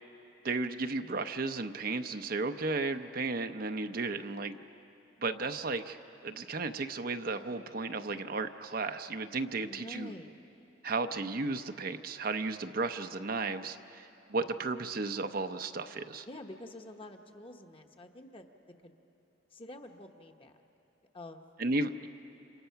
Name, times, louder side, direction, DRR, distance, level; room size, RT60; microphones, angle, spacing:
voice 1, 0.4-4.6 5.2-6.0 6.2-10.1 10.8-16.3 21.6-22.1, right 3 dB, 50° right, 8 dB, 0.7 m, -34 dB
voice 2, 3.9-4.4 9.6-10.3 16.3-18.5 18.8-18.9 19.5-20.5 21.1-21.4, left 1 dB, 30° left, 4 dB, 1.1 m, -48 dB
29.5 x 27.0 x 5.8 m, 2.9 s
head